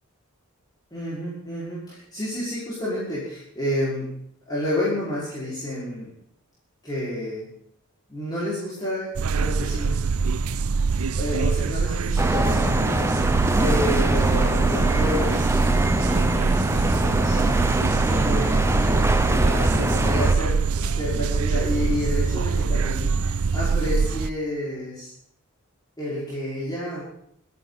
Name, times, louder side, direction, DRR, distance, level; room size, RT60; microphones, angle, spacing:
voice 1, 0.9-4.2 4.5-6.1 6.8-7.5 8.1-9.1 9.3-10.2 11.2-13.0 13.6-17.4 18.0-25.1 26.0-27.0, left 1 dB, 20° left, -10 dB, 5.5 m, -30 dB
sound 1, 9.2-24.3, right 4 dB, 80° right, 0.5 m, -24 dB
sound 2, 12.2-20.4, right 1 dB, 10° right, 0.7 m, -23 dB
26.0 x 10.0 x 4.2 m, 0.70 s
head